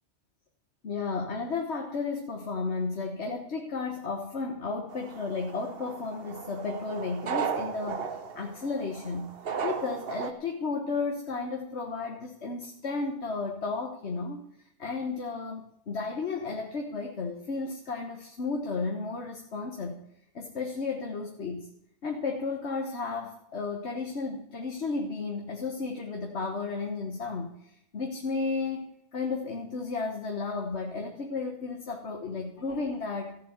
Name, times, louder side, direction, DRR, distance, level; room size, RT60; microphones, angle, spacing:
voice 1, 0.8-8.1 8.3-9.3 9.6-14.4 14.8-20.0 20.3-21.7 22.0-33.4, left 4 dB, 70° left, 3 dB, 1.6 m, -33 dB
sound 1, 4.9-10.3, right 6 dB, 60° right, 1.2 m, -36 dB
14.5 x 7.5 x 8.0 m, 0.80 s
omnidirectional pair, 1.2 m